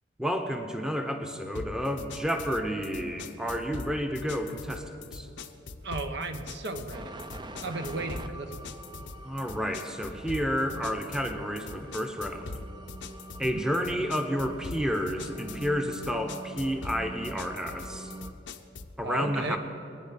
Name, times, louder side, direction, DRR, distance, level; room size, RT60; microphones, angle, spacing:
voice 1, 0.2-5.3 9.2-12.6 13.4-18.1 19.0-19.6, equal, 5° right, 5 dB, 0.9 m, -30 dB
sound 1, 1.5-19.0, left 3 dB, 70° left, 0.8 m, -42 dB
voice 2, 5.8-7.2 7.6-8.7 13.4-13.7 19.0-19.6, right 2 dB, 65° right, 6 dB, 1.1 m, -35 dB
sound 2, 6.9-18.3, right 2 dB, 25° right, 0.6 m, -45 dB
23.0 x 9.6 x 5.9 m, 2.7 s
head